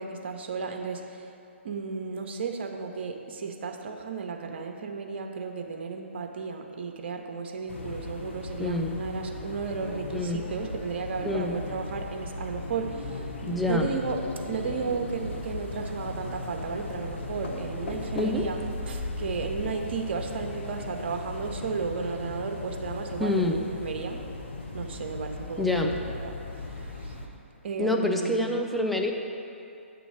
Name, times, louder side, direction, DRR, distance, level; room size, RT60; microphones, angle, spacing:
voice 1, 0.0-1.3 1.6-13.3 13.6-18.6 18.9-24.2 24.7-27.2 27.6-28.6, right 5 dB, 55° right, 3 dB, 0.7 m, -34 dB
sound 1, 7.7-27.3, left 2 dB, 65° left, 0.8 m, -37 dB
voice 2, 8.6-8.9 10.1-10.4 11.2-11.5 13.4-13.9 18.1-18.5 23.2-23.6 25.6-25.9 27.8-29.1, left 2 dB, ahead, 1 dB, 0.4 m, -26 dB
8.0 x 3.0 x 6.1 m, 2.6 s
figure-of-eight pair, 130°, 7 cm